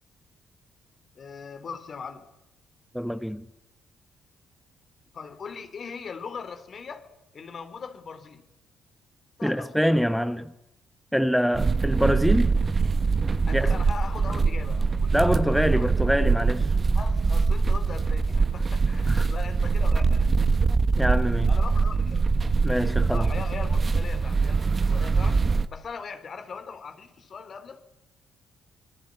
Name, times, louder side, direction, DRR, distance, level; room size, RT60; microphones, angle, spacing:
voice 1, 1.2-2.3 5.1-7.1 7.3-8.5 9.4-10.4 13.5-15.9 16.9-20.3 21.5-22.3 23.1-25.4 25.7-27.9, left 5 dB, 50° left, 3.7 m, -40 dB
voice 2, 2.9-3.5 9.4-10.5 11.1-12.5 13.5-13.8 15.1-16.7 19.1-19.3 21.0-21.5 22.6-23.3, equal, ahead, 1.0 m, -25 dB
sound 1, 11.5-25.7, right 4 dB, 35° right, 1.5 m, -23 dB
26.0 x 22.5 x 9.8 m
cardioid pair, 90°, 0 cm